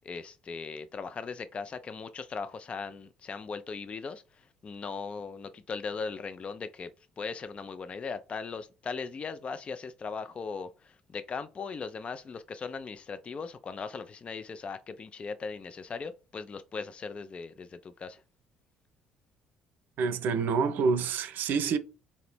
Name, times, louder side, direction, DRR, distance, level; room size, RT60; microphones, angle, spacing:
voice 1, 0.0-6.9 7.2-18.2, left 5 dB, 30° left, 0.3 m, -39 dB
voice 2, 20.0-21.8, right 5 dB, 50° right, 0.5 m, -27 dB
4.2 x 2.8 x 3.1 m
figure-of-eight pair, 50°, 4 cm